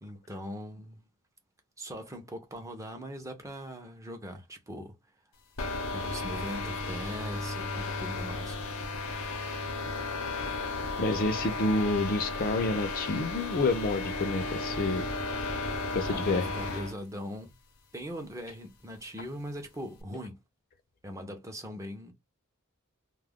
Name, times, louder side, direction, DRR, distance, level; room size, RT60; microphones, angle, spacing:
voice 1, 0.0-1.0 1.8-5.0 5.9-8.7 16.1-17.5 17.9-20.4 21.0-22.1, equal, 15° right, 0.5 m, -41 dB
sound 1, 5.6-17.0, left 3 dB, 80° left, 0.6 m, -34 dB
voice 2, 11.0-15.1 15.9-16.5, left 2 dB, 40° left, 0.4 m, -29 dB
2.3 x 2.0 x 3.4 m
head